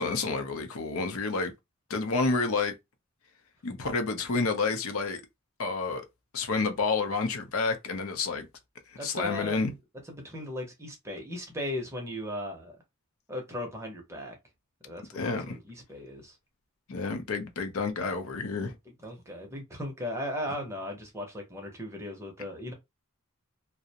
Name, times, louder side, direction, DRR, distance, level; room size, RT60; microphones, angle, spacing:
voice 1, 0.0-1.5 1.9-2.7 3.6-5.2 5.6-6.0 6.3-8.5 8.9-9.7 15.1-15.6 16.9-18.7, left 4 dB, 70° left, 0.5 m, -29 dB
voice 2, 9.0-9.7 10.1-12.8 13.3-14.4 14.8-16.3 19.0-22.7, left 1 dB, 10° right, 0.6 m, -37 dB
2.4 x 2.0 x 2.7 m
head